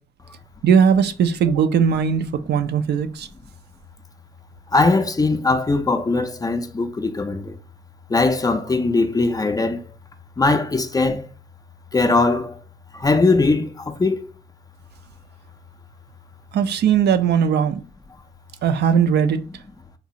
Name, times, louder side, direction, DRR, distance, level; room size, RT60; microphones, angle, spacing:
voice 1, 0.6-3.3 16.5-17.8 18.6-19.4, right 7 dB, 55° right, 0.4 m, -18 dB
voice 2, 4.7-7.6 8.1-9.8 10.4-11.2 11.9-12.5 12.9-14.2, left 3 dB, 20° left, 0.4 m, -20 dB
3.8 x 2.4 x 2.8 m
cardioid pair, 90°, 20 cm